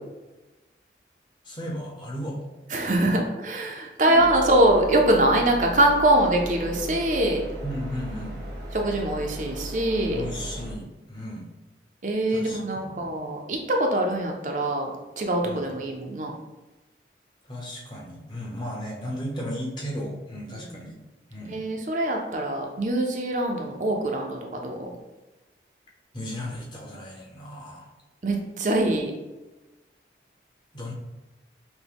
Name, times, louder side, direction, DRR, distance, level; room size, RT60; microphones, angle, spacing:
voice 1, 1.4-3.1 4.1-4.2 7.6-8.4 10.1-11.5 12.3-13.0 15.4-15.7 17.5-20.9 21.3-21.6 26.1-27.9 30.7-30.9, equal, 25° left, -3 dB, 0.8 m, -35 dB
voice 2, 2.7-7.4 8.7-10.2 12.0-16.3 20.6-20.9 21.5-24.9 28.2-29.1, right 1 dB, 45° right, 1 dB, 0.5 m, -23 dB
sound 1, 4.1-10.7, equal, 80° right, 1.1 m, -37 dB
5.8 x 2.1 x 3.5 m, 1.1 s
head